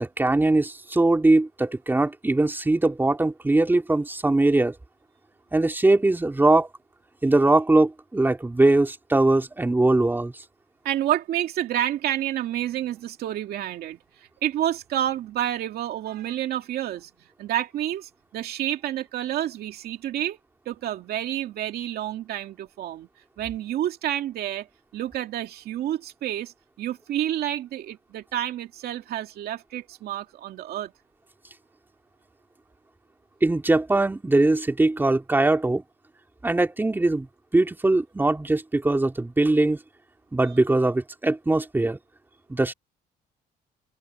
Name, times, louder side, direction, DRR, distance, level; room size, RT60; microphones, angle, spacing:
voice 1, 0.0-4.7 5.5-6.7 7.2-10.3 33.4-35.8 36.4-37.3 37.5-39.8 40.3-42.0 42.5-42.7, right 2 dB, 10° right, 3.3 m, -21 dB
voice 2, 10.8-17.1 17.4-20.4 20.7-23.1 23.4-24.7 24.9-30.9, right 12 dB, 70° right, 2.4 m, -29 dB
open air
cardioid pair, 110°, 17 cm